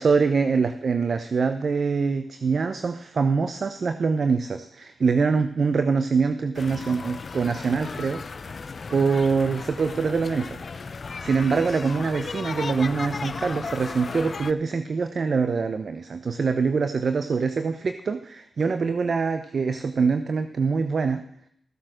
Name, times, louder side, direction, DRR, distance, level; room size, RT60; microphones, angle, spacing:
voice 1, 0.0-8.5 8.9-10.6 11.2-21.2, right 5 dB, 65° right, 9 dB, 0.8 m, -24 dB
sound 1, 6.5-14.5, left 4 dB, 55° left, 0.6 m, -35 dB
15.0 x 7.7 x 6.3 m, 0.68 s
supercardioid pair, 40°, 0 cm